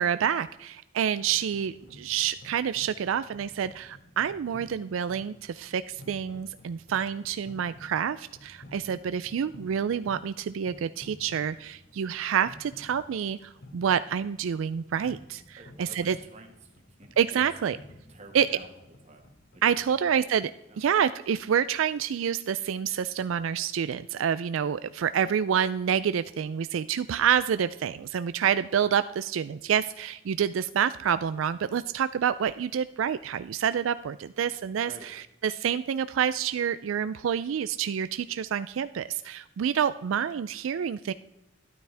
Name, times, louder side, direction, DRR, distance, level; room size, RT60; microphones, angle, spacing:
voice 1, 0.0-16.2 17.2-17.8 18.3-18.5 19.6-20.5 20.8-41.1, right 8 dB, 80° right, 14 dB, 0.4 m, -28 dB
sound 1, 1.1-19.8, left 1 dB, 55° left, 1.3 m, -52 dB
voice 2, 15.6-17.5 18.1-18.7 19.0-19.2 19.5-20.2 20.7-20.8 34.2-34.6 34.9-35.1, right 2 dB, 35° right, 3 dB, 1.8 m, -50 dB
13.0 x 12.0 x 3.4 m, 0.93 s
head